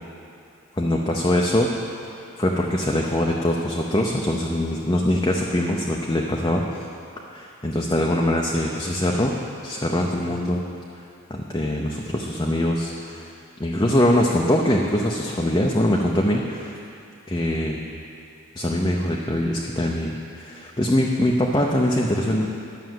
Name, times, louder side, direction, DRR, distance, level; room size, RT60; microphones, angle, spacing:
voice 1, 0.8-1.7 2.1-6.9 7.3-9.3 9.6-10.6 10.9-11.0 11.3-13.3 13.6-16.8 17.3-17.8 18.6-22.5, left 1 dB, 20° left, -2 dB, 0.6 m, -23 dB
11.5 x 6.2 x 7.7 m, 2.6 s
head